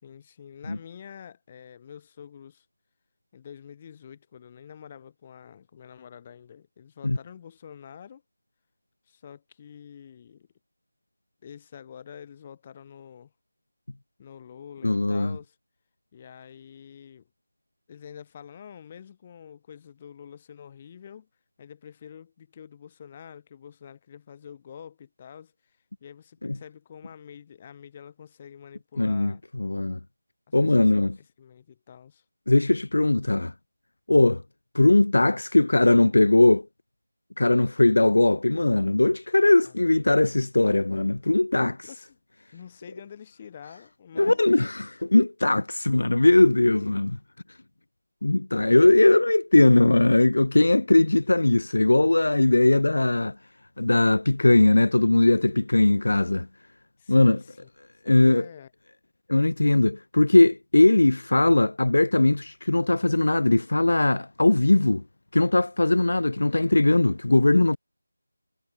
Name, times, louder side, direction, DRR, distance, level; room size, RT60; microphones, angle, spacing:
voice 1, 0.0-2.7 3.3-8.2 9.1-10.5 11.4-13.3 14.2-15.6 16.1-17.3 17.9-21.3 21.6-29.4 30.5-31.0 31.4-32.2 39.6-39.7 41.8-42.2 42.5-44.5 57.0-57.7 58.0-58.7, left 8 dB, 20° left, 5.0 m, -47 dB
voice 2, 14.8-15.4 26.4-26.6 29.0-30.0 30.5-31.2 32.5-33.5 34.1-34.4 34.7-36.7 37.4-41.9 44.2-47.2 48.2-53.4 53.8-56.5 57.1-57.4 58.1-58.5 59.3-65.0 65.3-67.8, left 2 dB, 55° left, 2.2 m, -20 dB
figure-of-eight pair, 165°, 0 cm